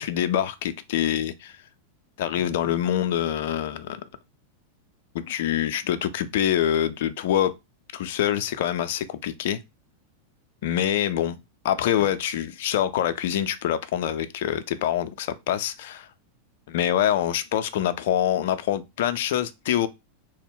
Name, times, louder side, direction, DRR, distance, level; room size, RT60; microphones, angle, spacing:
voice 1, 0.0-1.6 2.2-4.0 5.1-7.5 8.0-9.6 10.6-11.4 11.6-16.1 16.7-19.9, left 11 dB, 55° left, 0.4 m, -25 dB
2.8 x 2.1 x 3.7 m
figure-of-eight pair, 90°, 0 cm